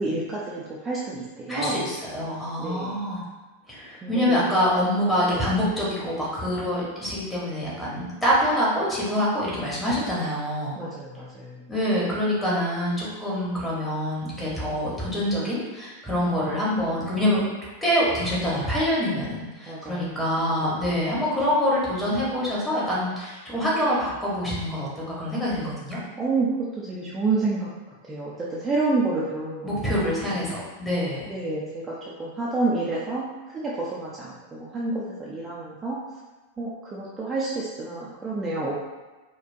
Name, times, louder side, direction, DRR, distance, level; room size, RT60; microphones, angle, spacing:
voice 1, 0.0-1.8 2.6-2.9 4.0-4.4 5.3-5.4 10.8-11.6 16.3-17.0 19.7-20.0 20.4-20.8 26.2-26.5 26.8-27.7 28.1-30.3 31.3-33.2 33.5-36.0 36.6-38.7, right 3 dB, 15° right, -7 dB, 0.6 m, -29 dB
voice 2, 1.5-3.2 3.7-10.7 11.7-17.4 17.8-24.9 25.2-26.0 29.6-31.3, equal, 10° left, -7 dB, 1.2 m, -25 dB
4.3 x 2.2 x 2.7 m, 1.2 s
figure-of-eight pair, 90°, 0 cm